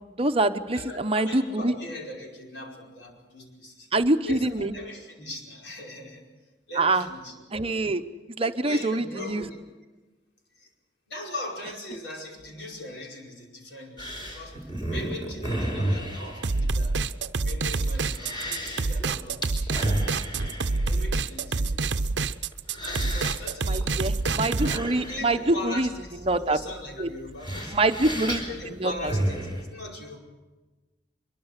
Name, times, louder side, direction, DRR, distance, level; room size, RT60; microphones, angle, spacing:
voice 1, 0.1-1.7 3.9-4.7 6.8-7.0 7.5-8.0 8.4-9.4 23.7-25.9 26.3-26.6 27.0-27.1 27.7-28.4 28.8-28.9, right 2 dB, 30° right, 8 dB, 0.8 m, -25 dB
voice 2, 0.7-3.9 4.2-6.3 6.7-7.4 8.4-9.6 10.5-10.7 11.1-17.0 17.4-20.0 20.8-22.1 22.7-24.1 24.5-27.8 28.5-30.2, left 1 dB, 70° left, 0 dB, 5.2 m, -40 dB
sound 1, 14.0-29.6, right 1 dB, 25° left, 4.8 m, -34 dB
sound 2, 16.4-24.8, right 3 dB, 70° right, 0.8 m, -27 dB
24.0 x 22.5 x 6.6 m, 1.2 s
head